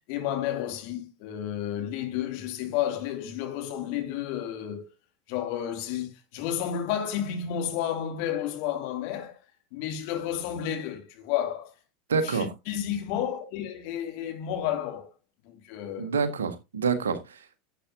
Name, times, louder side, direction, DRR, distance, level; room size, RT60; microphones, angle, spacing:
voice 1, 0.1-4.9 5.3-9.4 9.7-11.7 12.2-15.1 15.4-16.2, left 10 dB, 55° left, 2.5 m, -31 dB
voice 2, 12.1-12.5 16.0-17.6, right 5 dB, 75° right, 1.5 m, -27 dB
11.5 x 8.2 x 2.7 m
figure-of-eight pair, 80°, 0 cm